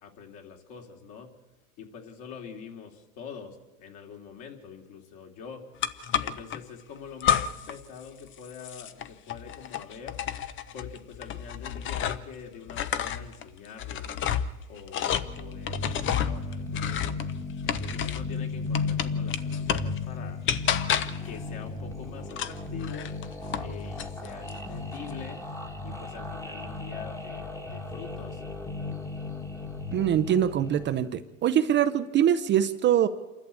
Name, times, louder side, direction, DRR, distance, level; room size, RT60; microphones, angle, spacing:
voice 1, 0.0-1.3 1.8-5.6 6.2-10.2 10.7-14.2 14.7-15.8 16.2-17.2 17.6-20.4 21.2-23.1 23.6-25.4 25.8-28.4, left 6 dB, 50° left, 3 dB, 3.1 m, -45 dB
sound 1, 5.8-6.6 7.2-7.8 8.1-12.3 12.7-18.3 18.7-20.0 20.5-21.3 22.3-23.7 24.0-24.6, left 9 dB, 30° left, 0.7 m, -30 dB
sound 2, 15.1-31.0, left 3 dB, 5° left, 1.5 m, -35 dB
voice 2, 29.9-33.1, right 10 dB, 25° right, 8 dB, 0.6 m, -23 dB
27.0 x 11.5 x 8.4 m, 1.2 s
supercardioid pair, 130°, 40 cm